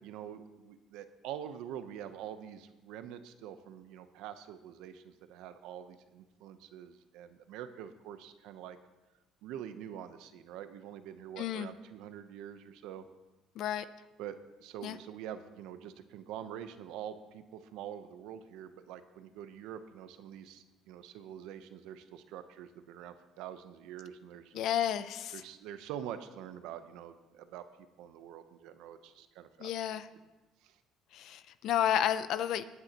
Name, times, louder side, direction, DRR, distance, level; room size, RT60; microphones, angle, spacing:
voice 1, 0.0-8.8 9.4-13.0 14.2-24.6 25.3-30.0 30.6-30.8, right 10 dB, 85° right, 10 dB, 0.8 m, -45 dB
voice 2, 11.4-11.7 13.6-13.8 14.8-15.0 24.5-25.4 29.6-30.1 31.1-32.6, left 10 dB, 70° left, 13 dB, 0.6 m, -31 dB
21.5 x 9.6 x 3.0 m, 1.2 s
cardioid pair, 115°, 0 cm